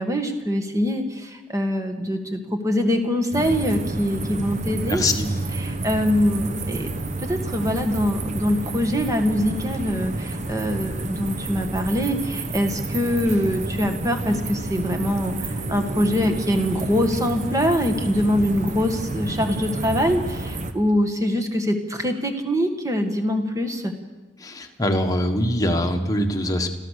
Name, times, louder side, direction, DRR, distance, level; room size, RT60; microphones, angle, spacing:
voice 1, 0.0-5.0 5.5-6.9 7.2-23.9, equal, 15° right, 5 dB, 1.9 m, -23 dB
sound 1, 3.3-20.7, right 2 dB, 35° right, 1.1 m, -30 dB
voice 2, 4.9-5.3 24.4-26.7, left 1 dB, 20° left, 4 dB, 1.5 m, -23 dB
30.0 x 13.5 x 6.6 m, 1.2 s
head